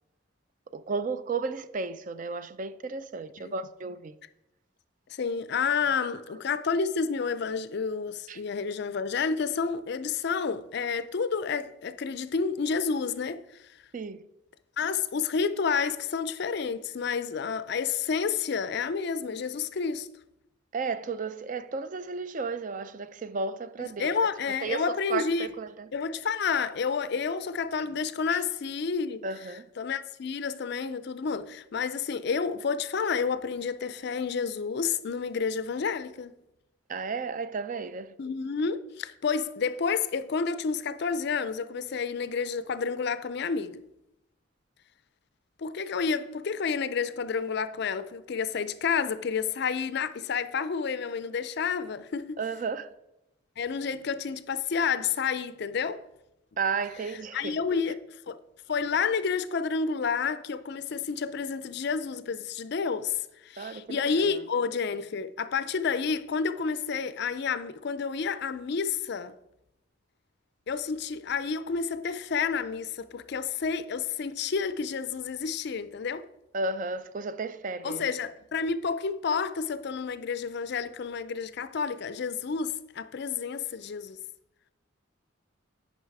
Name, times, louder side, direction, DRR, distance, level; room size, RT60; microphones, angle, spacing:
voice 1, 0.7-4.1 8.3-8.4 13.9-14.2 20.7-24.1 24.6-25.9 29.2-29.7 36.9-38.1 52.4-52.9 56.6-57.6 63.6-64.2 76.5-78.0, right 4 dB, 40° right, 0.4 m, -33 dB
voice 2, 5.1-13.4 14.8-20.1 23.8-25.5 25.9-29.2 29.8-36.4 38.2-43.8 45.6-52.4 53.6-56.0 57.3-58.0 58.3-58.4 58.7-69.3 70.7-76.3 77.8-84.2, left 5 dB, 55° left, 0.4 m, -30 dB
9.7 x 5.3 x 4.7 m
head